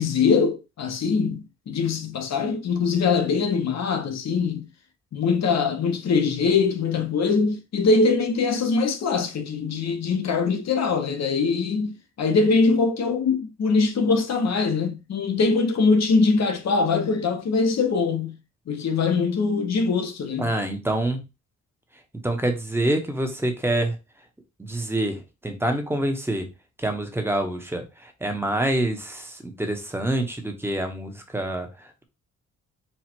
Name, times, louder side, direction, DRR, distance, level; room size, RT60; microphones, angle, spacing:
voice 1, 0.0-4.7 5.1-18.3 18.7-20.5, left 4 dB, 60° left, 0.9 m, -22 dB
voice 2, 20.4-21.2 22.2-24.0 24.6-26.5 26.8-32.0, right 1 dB, 10° right, 0.9 m, -26 dB
4.5 x 2.3 x 4.4 m
wide cardioid pair, 125°, 30 cm